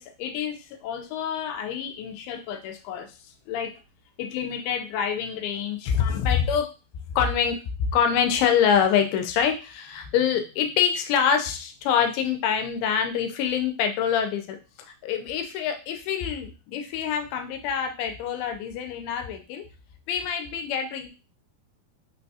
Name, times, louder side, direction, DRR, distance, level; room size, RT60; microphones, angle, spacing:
voice 1, 0.0-3.2 3.5-3.7 4.2-6.7 7.2-19.6 20.1-21.1, left 8 dB, 85° left, 5 dB, 2.4 m, -26 dB
5.8 x 2.2 x 2.7 m, 0.32 s
omnidirectional pair, 4.3 m